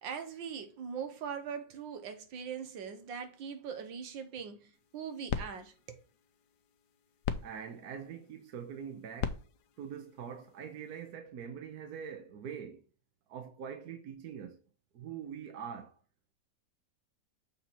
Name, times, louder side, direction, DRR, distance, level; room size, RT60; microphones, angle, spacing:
voice 1, 0.0-6.0, right 7 dB, 85° right, 1.8 m, -41 dB
sound 1, 4.7-11.1, left 8 dB, 70° left, 1.2 m, -42 dB
voice 2, 7.4-9.4 9.8-12.8 13.3-14.6 14.9-16.0, right 7 dB, 65° right, 1.2 m, -43 dB
7.0 x 4.5 x 4.2 m
omnidirectional pair, 2.0 m